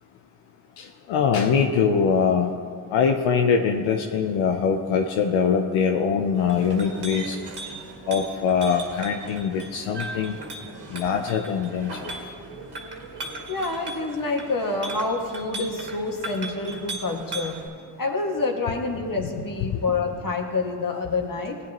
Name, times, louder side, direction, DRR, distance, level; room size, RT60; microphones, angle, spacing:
voice 1, 0.8-2.5 2.9-7.4 8.1-10.3 10.9-12.1, left 6 dB, 85° left, 3 dB, 0.7 m, -23 dB
Chink clink, 6.3-17.7, right 2 dB, 55° right, 1.9 m, -38 dB
voice 2, 13.5-17.6 18.0-21.6, left 3 dB, 45° left, 2 dB, 2.0 m, -27 dB
17.0 x 9.5 x 3.0 m, 2.1 s
supercardioid pair, 40°, 47 cm